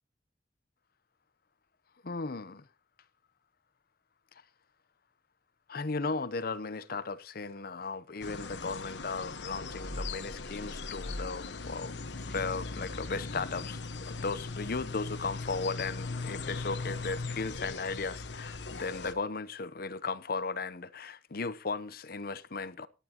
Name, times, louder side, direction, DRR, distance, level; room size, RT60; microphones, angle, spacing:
voice 1, 2.0-2.6 5.7-22.9, left 4 dB, 60° left, 0.8 m, -36 dB
sound 1, 8.2-19.1, left 3 dB, 85° left, 1.1 m, -39 dB
18.0 x 10.0 x 2.9 m
head